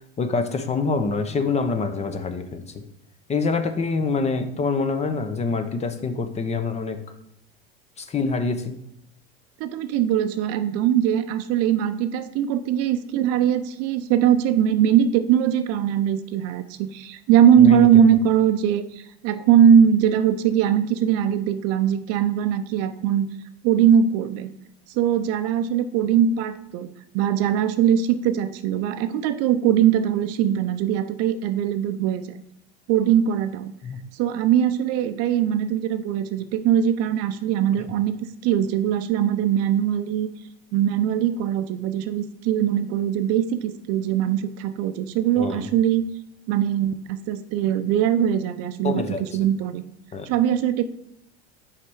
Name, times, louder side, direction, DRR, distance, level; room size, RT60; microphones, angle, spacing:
voice 1, 0.2-2.8 3.3-7.0 8.0-8.8 17.6-17.9 33.8-34.0 45.4-45.7 48.8-49.2 50.1-50.3, left 4 dB, 20° left, 8 dB, 0.6 m, -25 dB
voice 2, 9.6-23.3 23.6-24.5 24.9-26.9 27.1-32.3 32.9-33.7 34.1-38.2 38.4-40.3 40.7-46.1 46.5-49.8 50.2-50.8, right 9 dB, 50° right, 11 dB, 0.6 m, -21 dB
5.7 x 4.2 x 4.7 m, 0.78 s
hypercardioid pair, 95°, 31 cm